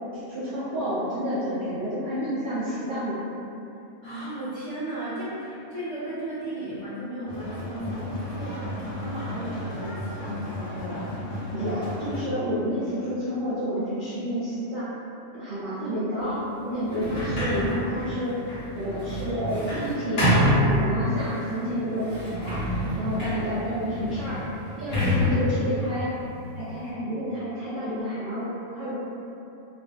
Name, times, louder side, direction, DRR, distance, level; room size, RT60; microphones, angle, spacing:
voice 1, 0.1-3.2 11.5-14.9 15.3-18.3 18.7-22.6 22.9-24.4 24.8-26.1 26.5-28.9, equal, 80° right, -11 dB, 0.4 m, -29 dB
voice 2, 4.0-8.5 8.8-11.4, right 1 dB, 35° left, -15 dB, 0.6 m, -35 dB
sound 1, 7.3-12.2, left 1 dB, 80° left, 1.1 m, -34 dB
Sliding door, 16.9-21.4 22.0-26.9, left 1 dB, 55° left, 0.9 m, -27 dB
2.5 x 2.3 x 2.2 m, 2.8 s
omnidirectional pair, 1.5 m